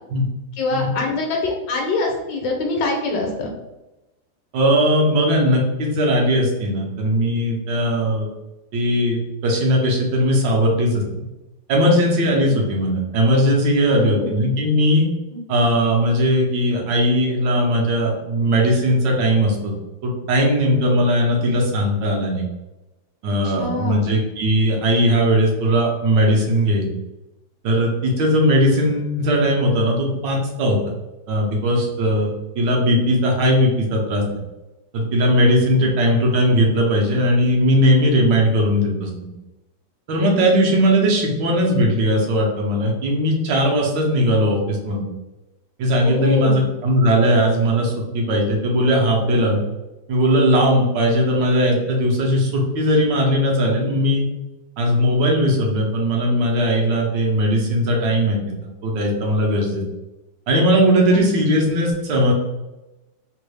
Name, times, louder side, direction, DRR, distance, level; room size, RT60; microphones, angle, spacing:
voice 1, 0.6-3.5 13.9-14.5 15.3-15.4 23.4-24.1 35.8-35.9 46.0-46.6 61.1-61.2, left 2 dB, 75° left, 1 dB, 1.2 m, -24 dB
voice 2, 4.5-8.3 8.7-11.0 11.7-15.1 15.5-19.7 20.0-22.4 23.2-26.9 27.6-30.8 31.3-32.3 32.5-34.2 34.9-39.1 40.1-45.1 45.8-49.6 50.1-54.2 54.8-58.4 58.8-59.8 60.5-62.3, equal, 75° right, -1 dB, 1.4 m, -18 dB
3.4 x 2.2 x 3.2 m, 1.0 s
omnidirectional pair, 2.0 m